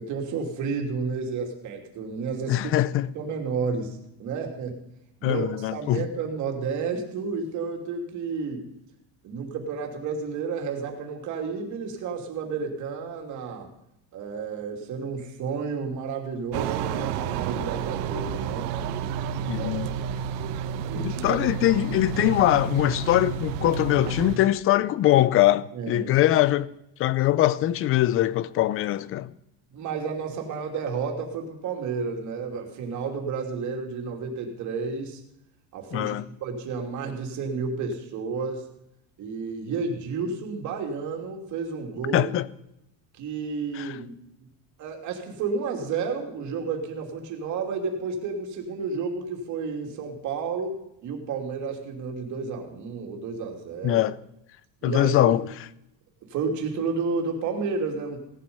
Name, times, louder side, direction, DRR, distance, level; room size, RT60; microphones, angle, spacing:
voice 1, 0.0-2.6 3.1-4.8 5.2-8.7 9.2-13.7 14.1-18.7 19.6-20.0 20.9-21.7 25.7-26.1 29.7-35.2 35.7-38.6 39.2-42.3 43.1-44.1 44.8-54.0 54.8-55.4 56.3-58.2, right 5 dB, 45° right, 3.0 m, -31 dB
voice 2, 2.5-3.1 5.2-6.0 19.5-19.9 21.0-26.7 27.0-29.3 35.9-36.2 42.1-42.5 43.8-43.9 53.8-54.1 54.8-55.4, left 14 dB, 35° left, 0.5 m, -22 dB
sound 1, 16.5-24.4, right 7 dB, 70° right, 1.2 m, -30 dB
17.5 x 11.5 x 5.5 m
cardioid pair, 170°, 42 cm